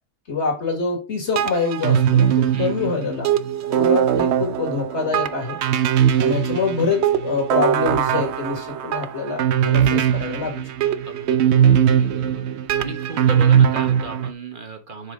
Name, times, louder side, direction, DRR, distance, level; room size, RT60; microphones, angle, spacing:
voice 1, 0.3-3.3 3.7-5.6 6.2-10.7, left 4 dB, 45° left, 1 dB, 2.3 m, -25 dB
sound 1, 1.4-14.3, right 9 dB, 65° right, 0.7 m, -20 dB
voice 2, 2.5-3.0 11.0-12.5 12.8-15.1, right 3 dB, 35° right, 6 dB, 1.3 m, -35 dB
6.6 x 4.9 x 3.7 m, 0.32 s
omnidirectional pair, 1.6 m